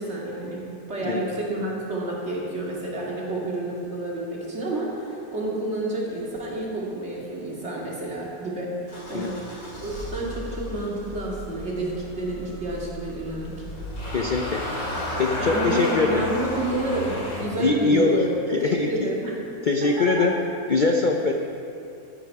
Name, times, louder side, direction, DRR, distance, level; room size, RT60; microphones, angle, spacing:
voice 1, 0.0-13.5 15.4-19.3 19.8-20.3, right 2 dB, 50° right, -4 dB, 2.5 m, -30 dB
Motor vehicle (road) / Engine starting, 8.9-17.4, left 1 dB, 85° left, 3.6 m, -33 dB
voice 2, 14.1-14.6 15.2-16.3 17.6-18.2 18.5-19.1 19.7-20.3 20.7-21.3, left 3 dB, 50° left, 2 dB, 0.6 m, -22 dB
13.5 x 10.0 x 4.7 m, 2.6 s
omnidirectional pair, 1.5 m